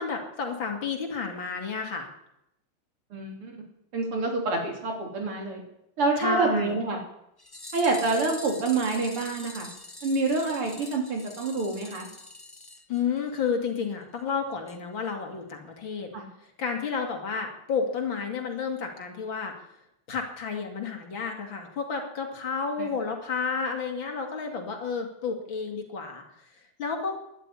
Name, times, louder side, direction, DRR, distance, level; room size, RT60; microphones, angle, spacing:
voice 1, 0.0-2.1 6.2-6.7 12.9-16.1 16.4-19.5 20.1-26.5 26.8-27.1, left 5 dB, 60° left, 3 dB, 3.1 m, -31 dB
voice 2, 3.1-3.5 3.9-5.6 6.0-7.0 7.7-9.7 10.0-12.1 16.1-16.3 22.8-22.9, right 3 dB, 80° right, 2 dB, 4.2 m, -27 dB
sound 1, 7.4-13.6 13.8-13.9 14.2-14.3 14.7-14.8 15.1-15.2, left 2 dB, 30° left, 0.4 m, -44 dB
12.5 x 11.5 x 10.0 m, 0.81 s
omnidirectional pair, 2.4 m